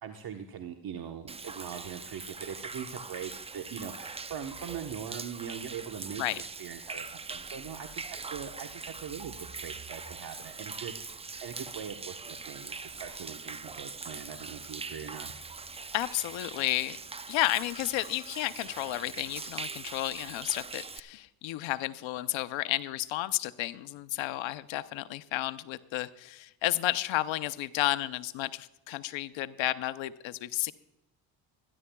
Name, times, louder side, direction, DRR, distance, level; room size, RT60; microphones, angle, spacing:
voice 1, 0.0-8.7 9.0-10.9 11.4-15.3, right 8 dB, 50° right, 5 dB, 1.2 m, -41 dB
Human voice / Rain / Stream, 1.3-21.0, right 4 dB, 15° right, 0.5 m, -42 dB
voice 2, 15.9-17.0 17.3-30.7, left 16 dB, 70° left, 13 dB, 0.8 m, -32 dB
25.5 x 11.0 x 2.3 m, 0.92 s
supercardioid pair, 75°, 47 cm